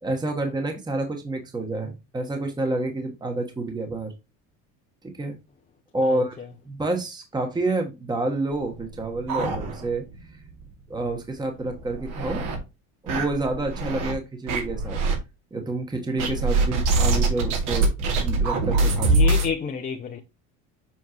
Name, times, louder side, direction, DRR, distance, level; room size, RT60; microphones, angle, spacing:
voice 1, 0.0-4.1 5.0-5.4 5.9-6.3 6.6-10.0 10.9-12.4 13.0-15.0 15.5-19.1, right 2 dB, 15° right, 1.3 m, -28 dB
voice 2, 6.0-6.5 19.1-20.2, left 6 dB, 25° left, 0.7 m, -30 dB
sound 1, 8.6-10.1 10.5-10.6 10.9-11.0 11.6-12.6 13.1-14.1 14.5-15.2 16.2-19.5, right 3 dB, 75° right, 2.5 m, -24 dB
7.3 x 4.4 x 3.0 m
cardioid pair, 115°, 32 cm